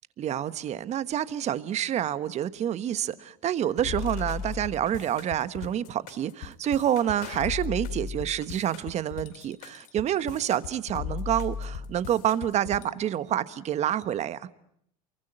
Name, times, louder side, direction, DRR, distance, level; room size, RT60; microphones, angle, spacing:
voice 1, 0.2-14.5, right 10 dB, 35° right, 1.3 m, -28 dB
sound 1, 3.8-12.9, left 7 dB, 75° left, 2.5 m, -37 dB
28.5 x 23.0 x 9.0 m
supercardioid pair, 125°, 19 cm